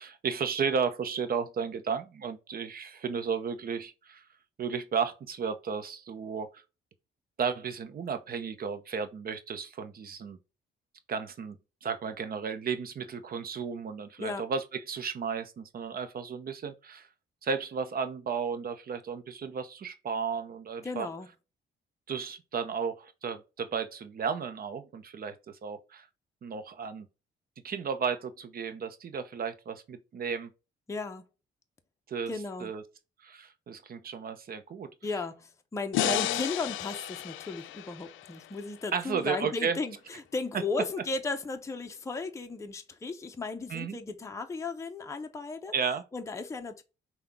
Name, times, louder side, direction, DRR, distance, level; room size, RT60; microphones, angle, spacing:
voice 1, 0.0-4.2 4.6-6.6 7.4-10.4 11.1-17.1 17.4-21.1 22.1-26.1 26.4-27.1 27.6-30.5 32.1-32.3 32.6-32.8 33.2-34.9 36.0-36.4 38.9-39.8 43.7-44.0 45.7-46.0, right 6 dB, 50° right, 0.7 m, -34 dB
voice 2, 20.8-21.3 30.9-31.2 32.3-32.7 35.0-45.7 46.1-46.8, left 3 dB, 15° left, 0.6 m, -35 dB
sound 1, 35.9-39.2, left 15 dB, 85° left, 0.4 m, -33 dB
5.6 x 2.3 x 3.5 m
cardioid pair, 90°, 20 cm